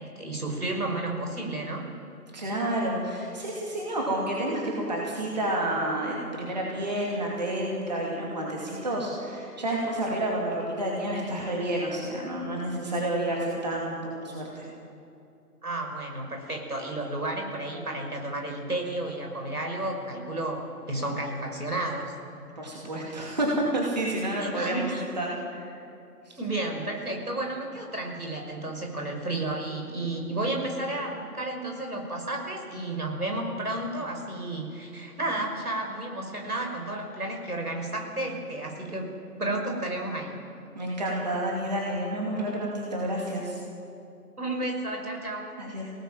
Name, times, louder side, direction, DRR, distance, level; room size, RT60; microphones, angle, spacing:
voice 1, 0.0-1.8 15.6-22.1 24.4-25.0 26.4-40.4 44.4-45.5, right 2 dB, 70° right, 2 dB, 5.9 m, -32 dB
voice 2, 2.3-14.7 22.6-25.7 26.3-26.4 40.7-43.6 45.6-45.9, right 1 dB, 25° right, -3 dB, 2.5 m, -30 dB
23.5 x 18.5 x 7.7 m, 2.7 s
figure-of-eight pair, 165°, 47 cm